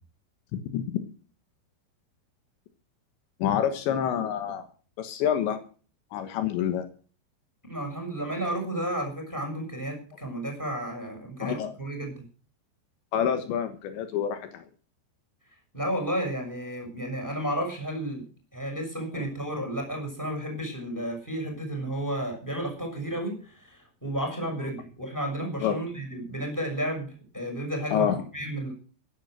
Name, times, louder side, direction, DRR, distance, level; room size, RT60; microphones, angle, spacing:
voice 1, 3.4-4.7 5.0-5.6 6.1-6.9 11.4-11.7 13.1-14.6 25.6-25.8 27.9-28.2, left 9 dB, 80° left, 8 dB, 3.6 m, -27 dB
voice 2, 7.7-12.2 15.7-18.2 18.5-28.7, right 1 dB, 5° left, 3 dB, 6.3 m, -32 dB
16.0 x 11.0 x 6.5 m, 0.39 s
omnidirectional pair, 5.2 m